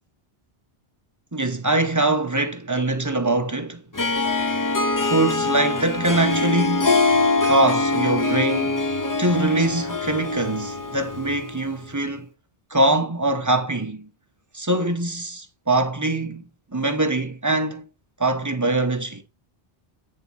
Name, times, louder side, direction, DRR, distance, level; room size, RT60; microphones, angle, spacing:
voice 1, 1.3-3.8 5.0-6.9 7.4-8.8 9.2-12.3 12.7-14.1 14.5-17.8 18.2-19.2, right 2 dB, 20° right, 0.8 m, -23 dB
Harp, 3.9-11.7, left 3 dB, 25° left, 0.6 m, -23 dB
8.9 x 3.7 x 4.1 m
omnidirectional pair, 1.0 m